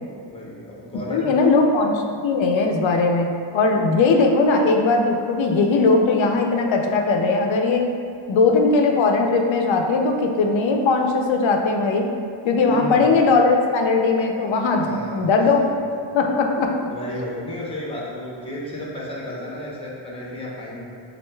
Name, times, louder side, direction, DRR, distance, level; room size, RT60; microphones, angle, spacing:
voice 1, 0.3-1.4 12.6-13.1 14.8-15.9 16.9-20.9, equal, 10° left, -5 dB, 0.7 m, -33 dB
voice 2, 1.1-7.9 8.3-12.1 12.4-14.9 15.1-15.8 16.1-16.9, left 3 dB, 70° left, 2 dB, 0.5 m, -19 dB
6.3 x 2.5 x 2.2 m, 2.4 s
wide cardioid pair, 130°, 49 cm